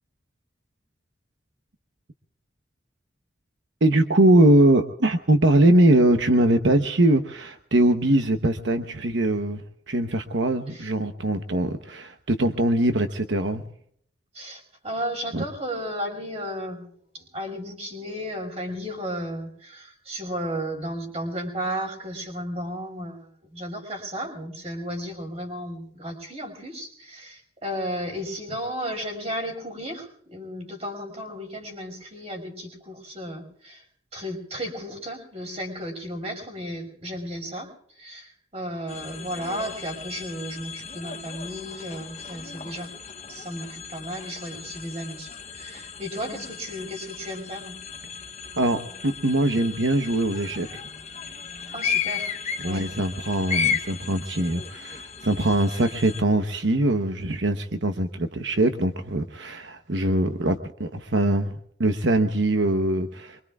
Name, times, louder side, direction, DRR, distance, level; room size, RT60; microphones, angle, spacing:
voice 1, 3.8-13.6 15.3-15.4 48.6-50.8 52.6-63.4, right 1 dB, 85° right, 7 dB, 1.0 m, -22 dB
voice 2, 14.3-16.9 17.1-33.8 34.1-37.7 38.0-42.9 43.3-47.8 51.7-52.3 52.6-52.8, equal, 35° right, 2 dB, 5.3 m, -34 dB
sound 1, 38.9-56.2, left 7 dB, 35° left, 0.9 m, -34 dB
24.5 x 24.5 x 2.4 m, 0.67 s
head